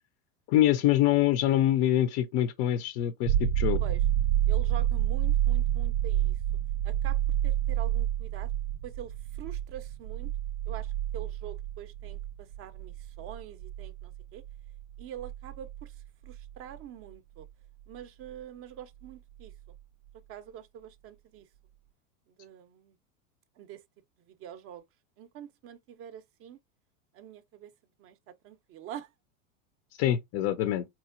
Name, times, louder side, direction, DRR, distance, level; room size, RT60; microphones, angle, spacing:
voice 1, 0.5-3.8 30.0-30.9, left 12 dB, 40° left, 0.4 m, -25 dB
sound 1, 3.3-16.8 19.5-19.6, right 12 dB, 90° right, 0.6 m, -29 dB
voice 2, 4.5-6.4 6.8-8.5 8.8-10.3 10.7-14.4 15.0-17.5 17.9-19.5 20.3-21.5 22.3-22.9 23.6-23.8 24.3-24.8 25.2-26.6 27.1-27.7 28.0-29.1, right 10 dB, 35° right, 0.5 m, -45 dB
3.6 x 3.0 x 2.4 m
hypercardioid pair, 95°, 42 cm